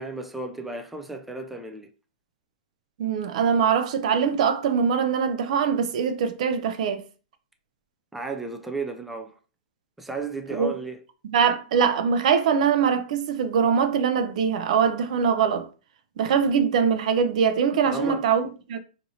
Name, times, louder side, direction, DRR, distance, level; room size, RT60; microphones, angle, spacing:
voice 1, 0.0-1.9 8.1-9.3 10.0-11.0 17.9-18.2, right 3 dB, 5° right, 0.3 m, -33 dB
voice 2, 3.0-7.0 10.5-10.7 11.2-15.7 16.2-18.8, right 6 dB, 60° right, 0.5 m, -22 dB
2.7 x 2.6 x 4.1 m
hypercardioid pair, 135°, 4 cm